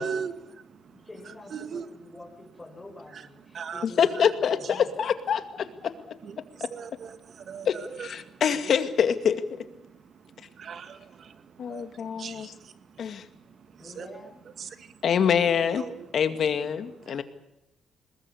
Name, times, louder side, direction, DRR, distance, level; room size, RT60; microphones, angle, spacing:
voice 1, 0.0-1.1 1.5-1.8 3.1-3.2 3.5-3.8 6.2-8.6 9.8-14.2 14.6-15.0 15.8-16.1 17.0-17.2, right 6 dB, 55° right, 2.1 m, -40 dB
voice 2, 0.9-4.9 13.5-14.5, left 2 dB, 20° left, 5.4 m, -47 dB
voice 3, 3.8-5.9 7.7-9.6 11.6-12.5 13.0-13.2 15.0-15.8 16.1-17.2, left 7 dB, 60° left, 2.2 m, -25 dB
22.0 x 19.5 x 8.5 m
cardioid pair, 90°, 0 cm